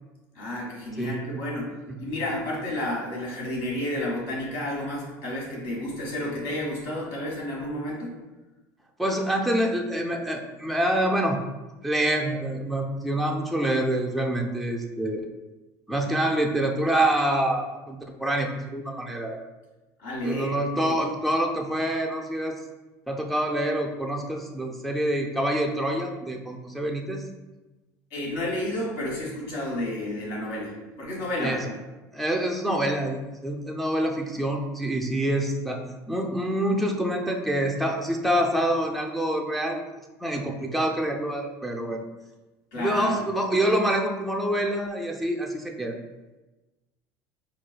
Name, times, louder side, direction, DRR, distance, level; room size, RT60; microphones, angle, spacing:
voice 1, 0.3-8.1 20.0-21.0 28.1-31.6 42.7-43.2, left 1 dB, 70° left, -4 dB, 1.4 m, -31 dB
voice 2, 1.0-1.4 1.9-2.1 9.0-11.4 11.8-15.2 15.9-19.4 20.2-22.6 23.1-27.2 31.4-31.6 32.1-35.8 36.1-39.8 40.2-42.0 42.7-46.0, right 1 dB, ahead, 0 dB, 0.4 m, -26 dB
4.6 x 2.3 x 2.2 m, 1.1 s
supercardioid pair, 90°, 9 cm